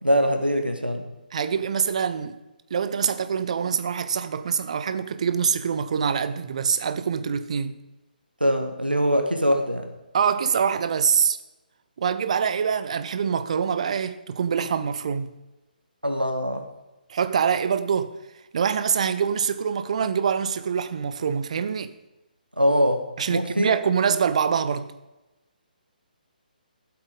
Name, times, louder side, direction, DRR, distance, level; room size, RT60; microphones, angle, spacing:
voice 1, 0.0-1.1 8.4-9.9 16.0-16.6 22.6-23.0 23.3-23.7, equal, 90° right, 1.6 m, -22 dB
voice 2, 1.3-2.4 2.7-7.8 10.1-11.4 12.0-15.3 17.1-18.1 18.5-21.9 23.2-24.9, right 7 dB, 45° right, 0.8 m, -24 dB
14.0 x 8.0 x 5.3 m
figure-of-eight pair, 140°, 5 cm